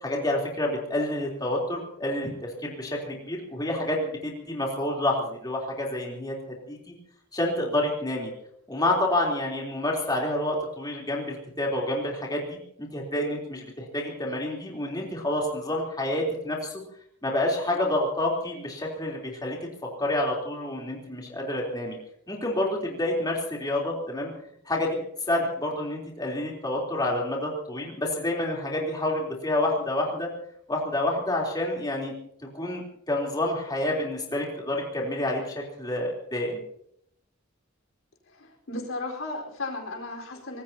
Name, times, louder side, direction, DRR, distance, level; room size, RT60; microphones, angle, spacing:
voice 1, 0.0-6.3 6.7-6.9 7.3-8.3 8.7-16.7 17.2-19.6 20.0-22.0 22.3-24.3 24.7-30.3 30.7-32.1 32.5-36.6, left 1 dB, 20° left, -2 dB, 3.6 m, -28 dB
voice 2, 38.3-40.6, left 2 dB, 75° left, 0 dB, 4.5 m, -35 dB
25.0 x 20.0 x 2.9 m, 0.69 s
head